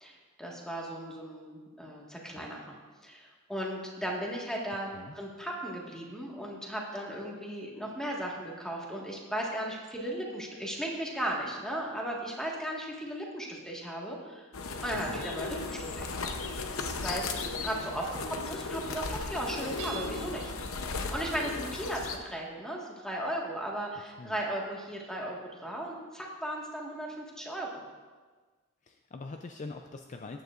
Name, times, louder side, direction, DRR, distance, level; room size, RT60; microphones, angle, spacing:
voice 1, 0.0-2.7 3.0-14.5 14.8-16.3 17.0-20.5 21.1-27.8, right 1 dB, 5° left, -2 dB, 1.6 m, -36 dB
sound 1, 14.5-22.2, left 4 dB, 70° left, 0.8 m, -36 dB
voice 2, 14.9-15.2 24.2-24.4 28.8-30.4, left 3 dB, 35° left, 5 dB, 0.4 m, -43 dB
Hammer / Chink clink, 19.8-20.6, right 9 dB, 80° right, 1.5 m, -44 dB
14.5 x 9.3 x 2.5 m, 1.4 s
head